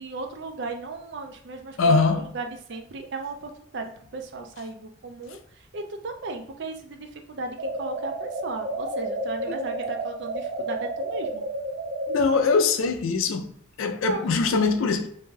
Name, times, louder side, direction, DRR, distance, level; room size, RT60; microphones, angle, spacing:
voice 1, 0.0-5.4 5.7-11.4 13.8-14.8, right 3 dB, 60° right, 0.5 m, -36 dB
voice 2, 1.8-2.3 12.1-13.5 13.8-15.1, left 4 dB, 90° left, 0.4 m, -22 dB
sound 1, 7.6-12.5, right 1 dB, 85° right, 0.8 m, -31 dB
2.6 x 2.2 x 3.1 m
head